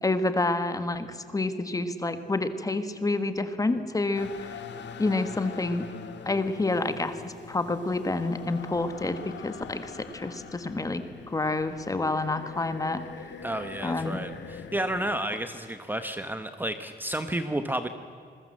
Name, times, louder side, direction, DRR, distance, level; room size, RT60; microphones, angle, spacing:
voice 1, 0.0-4.5 5.0-5.8 6.2-13.0 13.8-14.2, left 2 dB, 20° left, 10 dB, 1.5 m, -28 dB
sound 1, 4.1-15.2, left 7 dB, 90° left, 2.1 m, -43 dB
voice 2, 13.4-17.9, right 1 dB, 10° right, 9 dB, 1.0 m, -31 dB
27.0 x 21.5 x 7.6 m, 2.2 s
wide cardioid pair, 170°, 18 cm